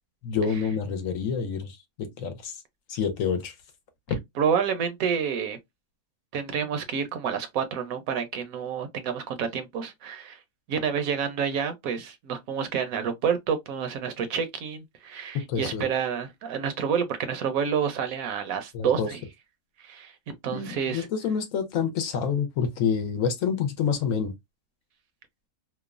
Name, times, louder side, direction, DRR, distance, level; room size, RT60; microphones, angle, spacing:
voice 1, 0.2-2.6 2.9-3.5 15.5-15.9 18.7-19.1 20.5-24.3, left 6 dB, 70° left, 1.0 m, -28 dB
voice 2, 4.4-5.6 6.3-10.4 10.7-19.2 19.8-21.1, right 7 dB, 75° right, 1.0 m, -29 dB
3.0 x 2.0 x 2.4 m
omnidirectional pair, 1.5 m